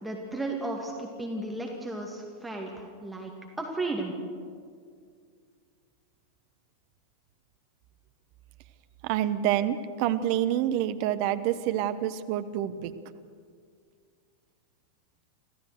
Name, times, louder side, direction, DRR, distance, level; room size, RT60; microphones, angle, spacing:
voice 1, 0.0-3.3 3.6-4.1, right 2 dB, 5° right, 0 dB, 2.4 m, -34 dB
voice 2, 9.0-12.9, right 11 dB, 45° right, 11 dB, 1.0 m, -27 dB
25.5 x 16.0 x 6.6 m, 2.1 s
figure-of-eight pair, 90°, 0 cm